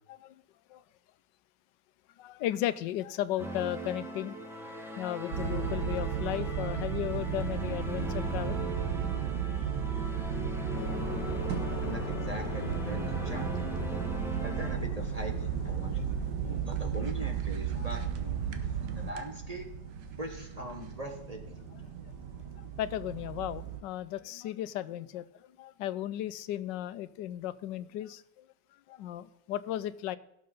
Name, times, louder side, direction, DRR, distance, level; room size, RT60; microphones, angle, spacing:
voice 1, 0.1-0.4 0.7-0.8 2.2-4.3 5.0-8.7 13.9-14.1 15.9-16.1 17.8-17.9 22.8-25.2 25.6-28.5 28.9-30.2, left 12 dB, 90° left, 16 dB, 1.3 m, -35 dB
sound 1, 3.4-14.8, right 1 dB, ahead, 1.2 m, -39 dB
sound 2, 5.3-23.8, right 7 dB, 75° right, 1.6 m, -34 dB
sound 3, 10.7-16.3, left 8 dB, 65° left, 1.2 m, -42 dB
voice 2, 11.8-13.7 14.4-16.0 16.4-19.7 20.2-21.6, right 1 dB, 25° right, 4 dB, 1.1 m, -41 dB
17.0 x 6.7 x 3.9 m, 0.83 s
omnidirectional pair, 1.9 m